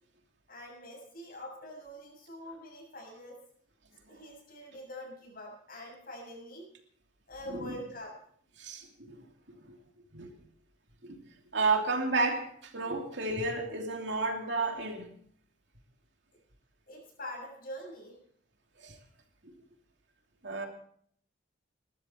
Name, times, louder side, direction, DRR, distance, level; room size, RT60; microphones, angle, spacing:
voice 1, 0.5-3.4 4.1-6.6 7.3-8.2 16.9-18.2, left 1 dB, 50° left, 7.2 m, -45 dB
voice 2, 8.6-9.2 9.7-9.8 10.1-10.3 11.0-11.2 11.5-15.1 18.8-19.0 19.4-19.5 20.4-20.7, right 3 dB, 65° right, 2.9 m, -32 dB
21.5 x 13.0 x 4.5 m
head